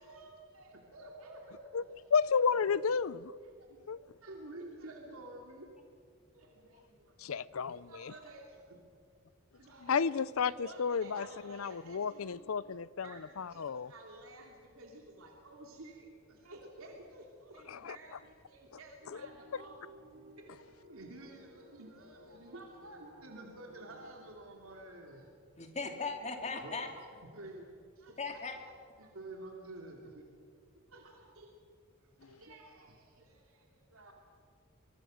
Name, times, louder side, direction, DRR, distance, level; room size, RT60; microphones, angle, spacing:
voice 1, 0.0-2.1 2.4-2.7 3.6-5.8 6.3-7.2 7.7-8.8 9.5-10.2 10.5-12.5 13.0-19.8 20.4-20.6 20.9-25.3 26.2-26.3 26.6-27.6 28.0-28.4 29.0-30.2 30.7-31.6 32.2-34.1, right 2 dB, 80° right, 2.8 m, -51 dB
voice 2, 2.1-3.3 3.9-4.0 7.2-8.1 9.8-13.9 17.7-18.0, left 6 dB, 75° left, 0.5 m, -32 dB
sound 1, 19.0-24.3, equal, 55° right, 4.1 m, -57 dB
voice 3, 25.6-26.9 28.2-28.6, left 4 dB, 30° left, 2.3 m, -38 dB
24.5 x 23.0 x 6.4 m
head